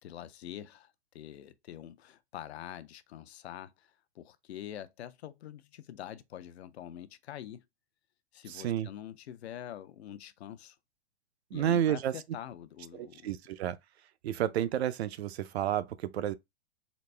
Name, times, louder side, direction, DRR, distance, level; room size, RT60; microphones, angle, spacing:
voice 1, 0.0-7.6 8.3-10.8 11.5-13.3, left 11 dB, 70° left, 0.6 m, -45 dB
voice 2, 8.5-8.9 11.5-12.1 12.9-13.8 14.2-16.3, right 10 dB, 70° right, 0.5 m, -31 dB
4.0 x 2.0 x 3.2 m
hypercardioid pair, 140°, 33 cm